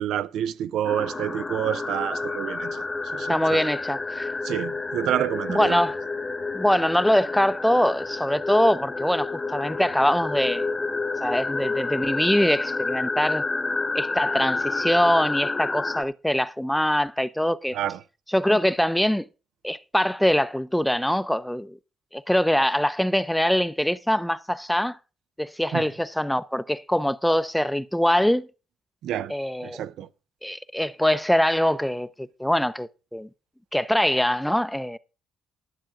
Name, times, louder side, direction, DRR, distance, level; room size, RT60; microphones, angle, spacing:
voice 1, 0.0-2.8 3.1-3.7 4.4-5.8 17.7-18.0 25.7-25.9 29.0-29.3 29.6-30.1, right 11 dB, 80° right, 0.6 m, -28 dB
sound 1, 0.8-16.0, left 3 dB, 25° left, 1.0 m, -29 dB
voice 2, 3.3-4.3 5.5-6.0 6.5-10.6 11.2-13.4 13.9-17.8 18.3-19.3 19.6-21.8 22.1-25.0 25.4-28.5 29.3-29.8 30.4-33.3 33.7-35.0, equal, 5° left, 0.5 m, -23 dB
11.5 x 10.0 x 3.6 m
cardioid pair, 90°, 0 cm